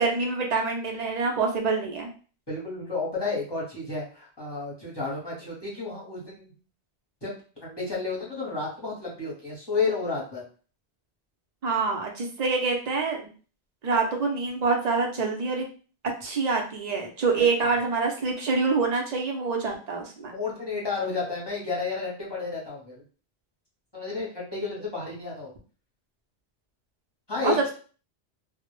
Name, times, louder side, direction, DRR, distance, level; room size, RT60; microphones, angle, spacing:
voice 1, 0.0-2.1 11.6-13.3 13.8-15.7 16.2-20.3 27.4-27.7, right 4 dB, 50° right, 1 dB, 0.5 m, -26 dB
voice 2, 2.5-6.5 7.2-7.3 7.6-10.4 17.4-17.5 20.3-23.0 23.9-25.5 27.3-27.7, left 4 dB, 25° left, -5 dB, 0.7 m, -31 dB
2.0 x 2.0 x 3.0 m, 0.38 s
omnidirectional pair, 1.1 m